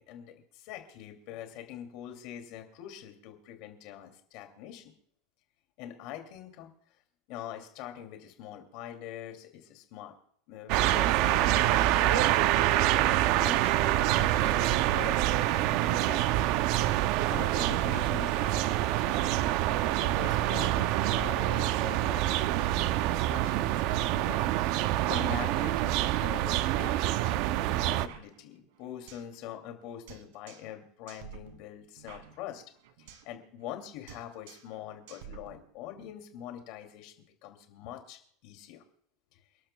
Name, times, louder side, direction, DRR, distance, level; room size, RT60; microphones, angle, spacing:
voice 1, 0.0-4.9 5.8-6.7 7.3-10.1 10.5-13.1 13.4-16.2 17.3-19.5 19.9-24.5 25.1-32.6 33.0-37.1 37.4-38.8, left 11 dB, 45° left, 5 dB, 2.5 m, -44 dB
sound 1, 10.7-28.1, right 14 dB, 45° right, 0.5 m, -26 dB
sound 2, 28.1-29.4 29.6-29.7 30.1-30.8 31.1-33.4 33.6-33.8 34.1-34.8 35.1-36.1, right 8 dB, 70° right, 2.4 m, -50 dB
29.0 x 12.0 x 2.3 m, 0.65 s
supercardioid pair, 180°, 0 cm